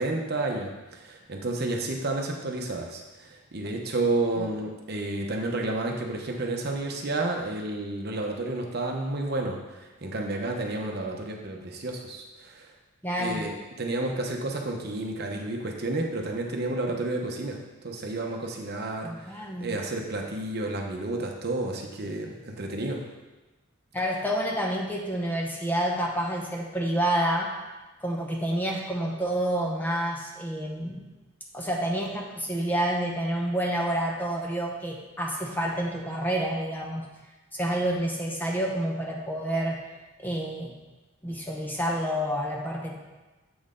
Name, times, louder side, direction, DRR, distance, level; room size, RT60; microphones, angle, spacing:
voice 1, 0.0-9.6 10.0-12.7 13.2-23.0, right 2 dB, 50° right, 1 dB, 0.9 m, -31 dB
voice 2, 13.0-13.5 19.0-19.8 23.9-27.5 28.0-31.1 31.5-37.0 37.5-39.8 40.2-40.7 41.2-43.0, right 1 dB, 10° left, -1 dB, 0.8 m, -28 dB
7.8 x 6.2 x 3.7 m, 1.1 s
head